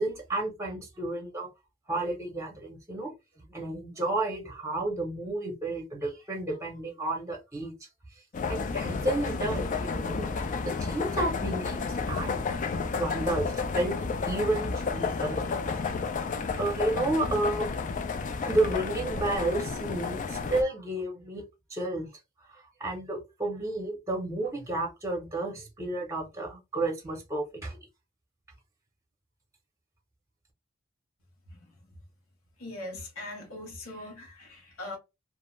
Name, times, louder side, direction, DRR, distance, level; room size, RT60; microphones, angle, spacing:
voice 1, 0.0-1.5 1.9-3.1 3.5-7.7 8.5-12.4 13.0-15.4 15.9-16.0 16.6-17.7 18.5-21.4 21.7-22.1 22.5-27.8, right 2 dB, 15° right, 0.8 m, -31 dB
sound 1, 8.3-20.6, left 4 dB, 40° left, 0.4 m, -31 dB
voice 2, 32.6-35.0, left 2 dB, 85° left, 1.0 m, -40 dB
2.5 x 2.3 x 3.0 m
head